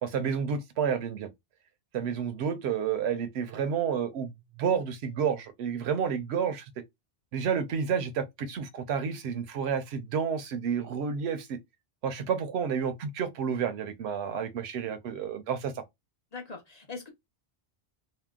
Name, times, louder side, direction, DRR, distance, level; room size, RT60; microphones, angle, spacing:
voice 1, 0.0-1.3 1.9-6.7 7.3-11.6 12.0-15.8, right 7 dB, 70° right, 0.8 m, -30 dB
voice 2, 16.3-17.1, left 4 dB, 40° left, 0.8 m, -41 dB
2.8 x 2.0 x 3.5 m
omnidirectional pair, 1.2 m